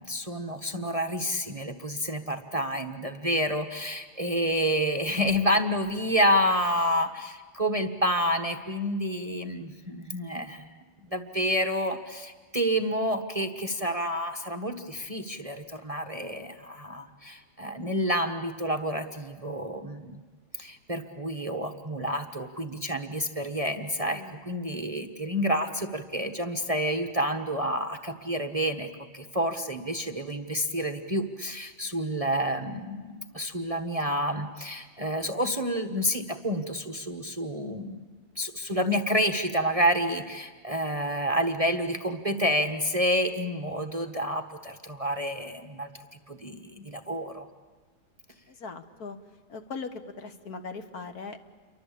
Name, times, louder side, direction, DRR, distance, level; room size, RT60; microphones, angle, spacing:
voice 1, 0.0-10.7 11.1-20.2 20.6-28.9 29.1-38.1 38.3-45.9 46.3-47.5, equal, 25° right, 7 dB, 1.1 m, -29 dB
voice 2, 24.1-24.4 48.5-49.2 49.5-51.4, left 4 dB, 60° left, 8 dB, 1.9 m, -39 dB
29.0 x 23.5 x 8.5 m, 1.4 s
omnidirectional pair, 1.8 m